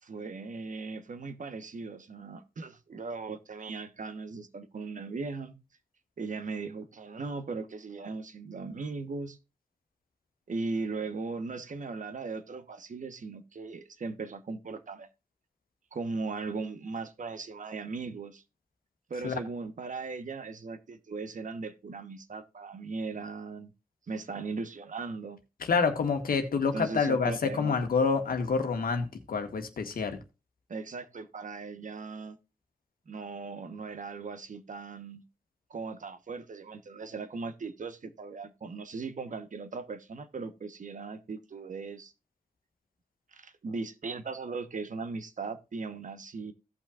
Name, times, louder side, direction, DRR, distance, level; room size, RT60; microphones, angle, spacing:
voice 1, 0.0-5.6 6.2-9.4 10.5-15.1 15.9-18.4 19.1-23.7 24.1-25.4 26.7-27.8 30.7-32.4 33.1-35.2 35.7-42.1 43.3-46.5, right 4 dB, 60° right, 1.1 m, -38 dB
voice 2, 25.6-30.2, left 5 dB, 80° left, 1.5 m, -28 dB
16.5 x 5.8 x 2.4 m
cardioid pair, 75°, 15 cm